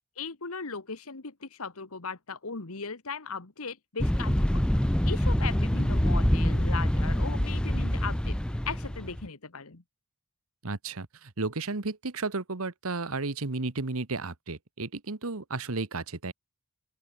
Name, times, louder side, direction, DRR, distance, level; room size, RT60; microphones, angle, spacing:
voice 1, 0.2-4.6 5.0-8.4 8.7-9.8, left 4 dB, 75° left, 1.6 m, -38 dB
sound 1, 4.0-9.3, equal, 5° left, 0.4 m, -26 dB
voice 2, 10.6-16.3, right 3 dB, 70° right, 1.4 m, -33 dB
open air
head